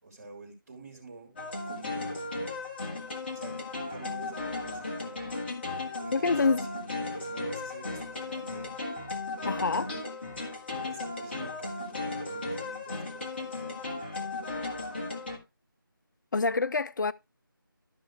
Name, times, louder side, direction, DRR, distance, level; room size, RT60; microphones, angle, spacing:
voice 1, 0.0-1.4 1.7-2.2 3.3-3.6 3.9-5.3 6.0-8.8 9.9-10.1 10.9-14.4, right 2 dB, 40° right, 3.9 m, -47 dB
sound 1, 1.4-15.4, left 2 dB, 30° left, 1.7 m, -36 dB
voice 2, 6.1-6.6 9.4-9.9 16.3-17.1, left 4 dB, 60° left, 0.4 m, -26 dB
13.0 x 5.4 x 3.4 m
figure-of-eight pair, 165°, 12 cm